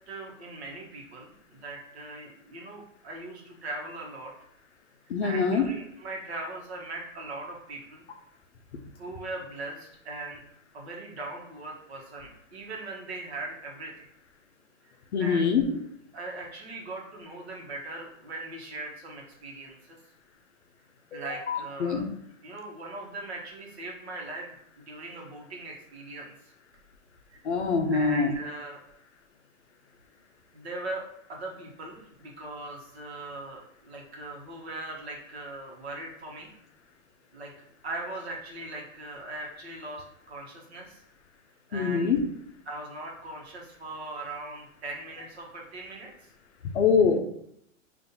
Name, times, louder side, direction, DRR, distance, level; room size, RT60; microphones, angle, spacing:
voice 1, 0.0-4.3 5.2-8.1 9.0-10.4 10.7-14.1 14.8-14.9 15.2-15.5 16.1-20.0 21.1-22.1 22.4-26.5 27.3-27.6 27.9-28.8 30.5-31.0 31.3-36.5 37.3-37.5 37.8-41.0 41.7-42.2 42.7-46.1, right 2 dB, 55° right, -1 dB, 1.1 m, -40 dB
voice 2, 5.1-5.7 15.1-15.7 21.1-22.0 27.4-28.3 41.7-42.2 46.7-47.2, left 5 dB, 60° left, 5 dB, 0.6 m, -24 dB
5.4 x 2.5 x 2.7 m, 0.73 s
hypercardioid pair, 180°, 40 cm